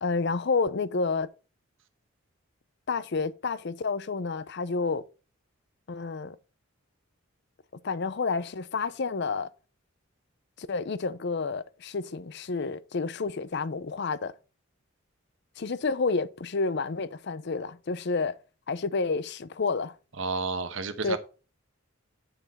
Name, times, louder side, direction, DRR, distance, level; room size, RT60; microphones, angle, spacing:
voice 1, 0.0-1.3 2.9-5.0 5.9-6.4 7.8-9.5 10.6-14.3 15.6-18.4 18.7-19.9 21.0-21.2, left 4 dB, 55° left, 0.6 m, -29 dB
voice 2, 20.2-21.2, right 4 dB, 65° right, 1.0 m, -31 dB
9.1 x 6.0 x 4.2 m
head